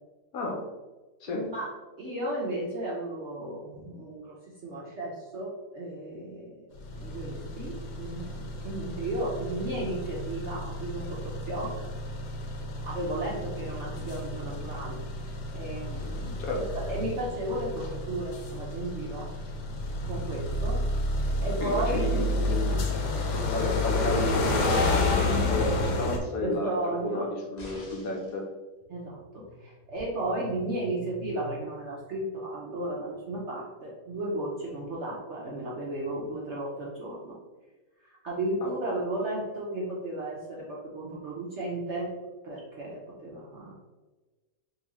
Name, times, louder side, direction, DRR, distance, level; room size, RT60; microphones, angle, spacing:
voice 1, 1.3-1.7 2.0-4.4 4.6-6.5 7.0-11.9 12.8-15.0 15.5-19.3 20.1-20.8 21.4-22.0 26.4-27.3 28.9-37.4 38.0-42.1 42.4-43.7, right 1 dB, 60° right, -4 dB, 0.7 m, -34 dB
sound 1, 6.8-26.2, left 2 dB, 90° left, 1.2 m, -30 dB
voice 2, 21.6-22.8 23.3-28.5 38.6-38.7, left 2 dB, 70° left, 0 dB, 1.0 m, -32 dB
sound 2, 27.6-28.4 30.0-30.1, left 1 dB, 40° left, 0.6 m, -46 dB
3.8 x 2.8 x 2.9 m, 1.2 s
omnidirectional pair, 1.8 m